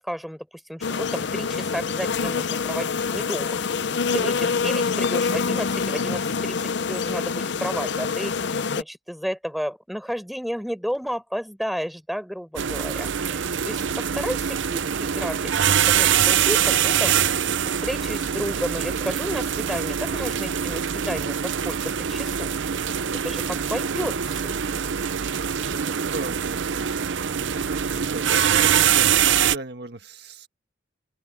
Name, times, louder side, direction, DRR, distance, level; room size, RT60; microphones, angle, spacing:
voice 1, 0.0-15.4 15.9-17.4 17.8-21.8 22.1-22.5 23.2-24.5, equal, ahead, 5.5 m, -32 dB
sound 1, 0.8-8.8, left 5 dB, 65° left, 0.6 m, -26 dB
voice 2, 6.0-6.4 25.7-26.9 27.3-30.5, right 2 dB, 55° right, 1.7 m, -38 dB
sound 2, 12.6-29.6, right 8 dB, 75° right, 0.6 m, -24 dB
open air
head